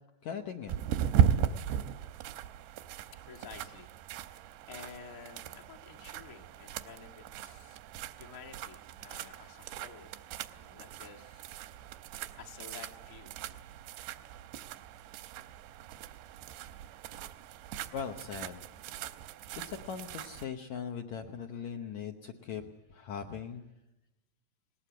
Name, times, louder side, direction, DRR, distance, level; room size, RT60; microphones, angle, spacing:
voice 1, 0.2-0.7 17.9-18.6 19.6-23.6, left 7 dB, 90° left, 4 dB, 1.6 m, -40 dB
sound 1, 0.7-20.4, right 9 dB, 90° right, 3.1 m, -37 dB
voice 2, 3.3-3.9 4.7-7.8 8.2-10.1 10.5-11.6 12.4-13.3, left 6 dB, 45° left, 2 dB, 1.0 m, -51 dB
20.0 x 19.0 x 8.0 m, 0.94 s
omnidirectional pair, 4.8 m